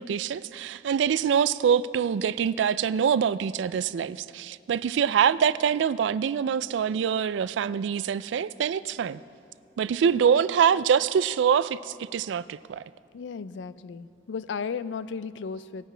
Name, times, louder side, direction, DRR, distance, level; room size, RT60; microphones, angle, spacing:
voice 1, 0.0-9.2 9.8-12.8, right 7 dB, 85° right, 0.3 m, -24 dB
voice 2, 13.1-15.9, left 5 dB, 85° left, 0.4 m, -35 dB
18.5 x 9.2 x 3.3 m
head